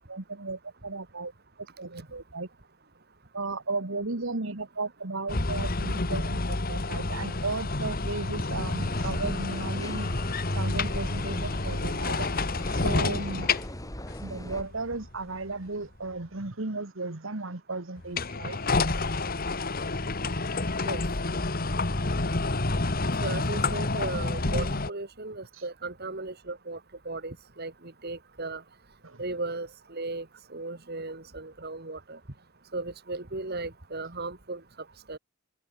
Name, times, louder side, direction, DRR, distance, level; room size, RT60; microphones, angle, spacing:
voice 1, 0.1-1.3 1.8-2.5 3.3-10.1 10.5-12.3 12.7-13.5 14.2-18.6 25.5-25.6 29.0-29.2, right 3 dB, 65° right, 1.6 m, -35 dB
sound 1, 5.3-15.6 18.0-24.9, left 3 dB, 45° left, 1.6 m, -29 dB
sound 2, 8.8-14.6, equal, 15° left, 5.4 m, -40 dB
voice 2, 23.2-26.8 27.1-27.7 28.0-28.6 29.2-30.3 30.5-32.2 32.7-34.6 35.1-35.2, right 3 dB, 50° right, 2.2 m, -36 dB
head